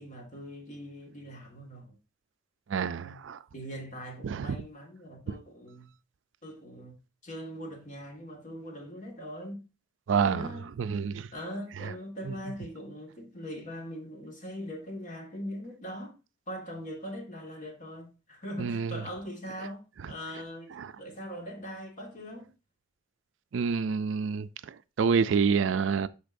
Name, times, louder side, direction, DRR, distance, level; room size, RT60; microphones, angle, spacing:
voice 1, 0.0-2.0 2.9-3.2 3.5-6.0 6.4-7.0 7.2-9.7 10.2-10.7 11.3-16.2 16.5-20.7 21.0-22.5, equal, 40° left, 1.8 m, -41 dB
voice 2, 2.7-3.4 4.2-4.6 10.1-10.5 10.8-11.3 18.6-19.0 20.8-20.9 23.5-26.1, right 6 dB, 80° right, 0.4 m, -28 dB
12.0 x 4.1 x 2.6 m
head